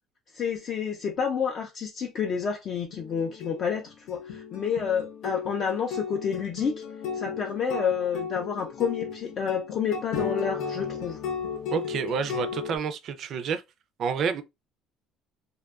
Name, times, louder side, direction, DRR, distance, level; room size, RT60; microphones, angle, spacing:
voice 1, 0.3-6.8 7.1-11.2, left 7 dB, 40° left, 0.4 m, -29 dB
sound 1, 2.9-12.8, left 6 dB, 70° left, 0.7 m, -35 dB
voice 2, 11.7-13.6 14.0-14.4, right 6 dB, 50° right, 0.3 m, -29 dB
2.6 x 2.2 x 2.3 m
cardioid pair, 145°, 0 cm